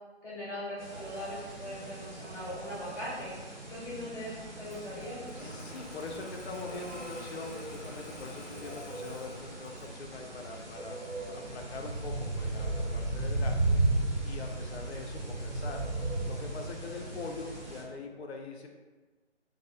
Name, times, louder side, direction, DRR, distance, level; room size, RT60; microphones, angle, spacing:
voice 1, 0.2-3.3 3.7-5.5, equal, 15° left, -15 dB, 0.9 m, -40 dB
sound 1, 0.8-17.8, right 2 dB, 40° right, 0.9 m, -36 dB
Engine starting, 4.6-10.0, left 1 dB, 40° left, 1.0 m, -48 dB
voice 2, 5.4-11.0 11.3-13.8 14.2-15.9 16.2-18.7, left 3 dB, 65° left, 2 dB, 0.5 m, -43 dB
2.5 x 2.0 x 2.4 m, 1.3 s
figure-of-eight pair, 155°, 35 cm